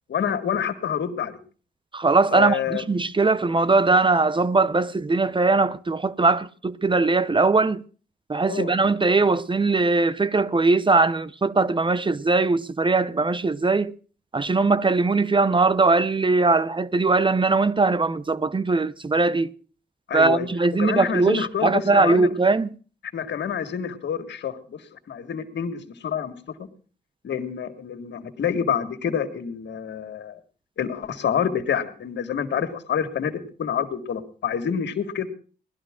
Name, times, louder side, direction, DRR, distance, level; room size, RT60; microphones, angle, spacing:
voice 1, 0.1-1.4 2.3-2.8 8.5-8.7 20.1-20.5 20.8-22.3 23.1-26.3 26.6-26.7 27.2-30.4 30.8-35.3, left 8 dB, 75° left, 1.8 m, -27 dB
voice 2, 1.9-7.8 8.3-13.9 14.3-19.5 20.1-22.7, right 3 dB, 25° right, 0.8 m, -20 dB
18.5 x 12.5 x 3.7 m
cardioid pair, 70°, 18 cm